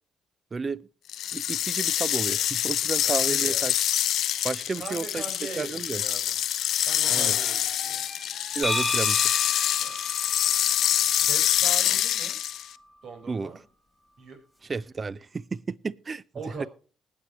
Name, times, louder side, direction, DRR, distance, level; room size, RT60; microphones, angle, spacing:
voice 1, 0.5-0.9 1.3-3.7 4.4-5.2 5.6-6.0 7.1-7.4 8.6-9.2 13.3-13.5 14.7-16.2 16.6-16.7, right 4 dB, 35° right, 0.6 m, -32 dB
sound 1, 1.1-12.7, left 11 dB, 70° left, 0.5 m, -26 dB
voice 2, 3.1-3.7 4.8-6.4 6.8-8.0 9.8-10.0 10.4-10.5 11.0-12.4 13.0-13.6 14.2-14.4 16.3-16.7, right 4 dB, 65° right, 4.5 m, -41 dB
Squeak, 7.0-12.0, equal, 20° right, 3.0 m, -47 dB
sound 2, 8.6-12.4, left 1 dB, 15° left, 2.4 m, -34 dB
20.0 x 8.7 x 3.0 m
supercardioid pair, 55°, 0 cm